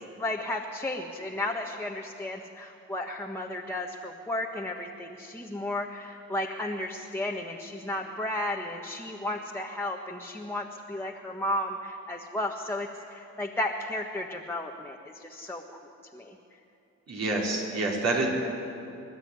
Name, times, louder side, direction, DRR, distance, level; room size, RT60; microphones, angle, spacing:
voice 1, 0.0-15.6 16.1-16.3, left 1 dB, 10° left, -1 dB, 1.5 m, -33 dB
voice 2, 17.1-18.3, right 2 dB, 60° right, -2 dB, 5.3 m, -27 dB
25.5 x 12.0 x 9.6 m, 2.8 s
cardioid pair, 90°, 30 cm